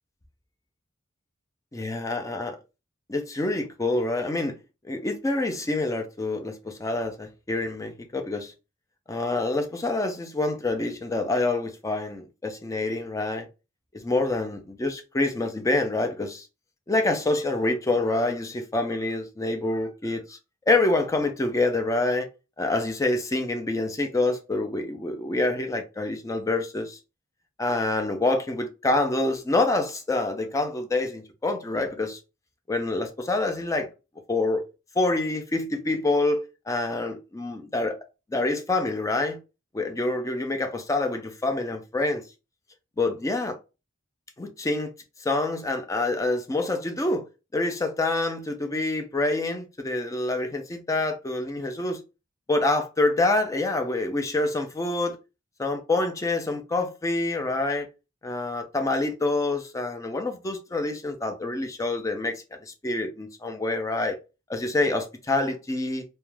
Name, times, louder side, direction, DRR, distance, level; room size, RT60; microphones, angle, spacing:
voice 1, 1.7-2.5 3.1-4.6 4.9-8.5 9.1-13.5 13.9-16.5 16.9-20.4 20.7-22.3 22.6-27.0 27.6-32.2 32.7-33.9 34.3-34.7 35.0-38.0 38.3-39.4 39.7-42.2 43.0-43.6 44.4-44.9 45.2-47.3 47.5-52.0 52.5-55.2 55.6-57.9 58.2-64.2 64.5-66.0, left 2 dB, 15° left, 0.4 m, -26 dB
2.3 x 2.1 x 3.1 m
head